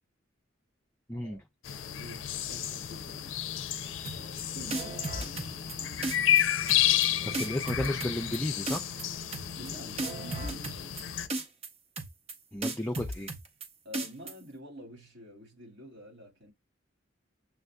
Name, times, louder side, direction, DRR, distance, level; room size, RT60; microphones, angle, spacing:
voice 1, 1.1-1.4 7.2-8.8 12.5-13.3, left 1 dB, 10° left, 0.4 m, -33 dB
sound 1, 1.6-11.3, left 11 dB, 80° left, 0.5 m, -31 dB
voice 2, 1.8-3.4 4.1-6.2 7.2-7.7 9.6-11.0 13.8-16.5, equal, 65° right, 1.9 m, -48 dB
sound 2, 4.0-4.4 4.7-5.7 6.0-6.4 6.7-7.1 7.3-8.4 8.7-9.0 9.3-9.7 10.0-11.0 11.3-11.7 12.0-12.3 12.6-13.7 13.9-14.3, right 2 dB, 30° right, 0.7 m, -35 dB
7.1 x 2.6 x 2.2 m
head